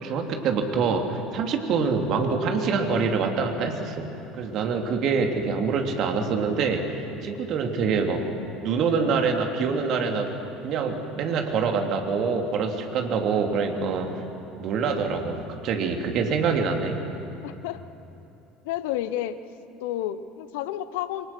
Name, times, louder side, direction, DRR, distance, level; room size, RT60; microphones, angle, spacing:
voice 1, 0.0-4.1 4.3-8.3 8.6-10.3 10.6-14.2 14.6-17.0, right 5 dB, 50° right, 3 dB, 3.2 m, -25 dB
voice 2, 17.4-17.8 18.6-19.4 19.8-21.3, left 12 dB, 65° left, 13 dB, 1.1 m, -30 dB
28.5 x 23.5 x 6.1 m, 2.9 s
figure-of-eight pair, 65°, 0 cm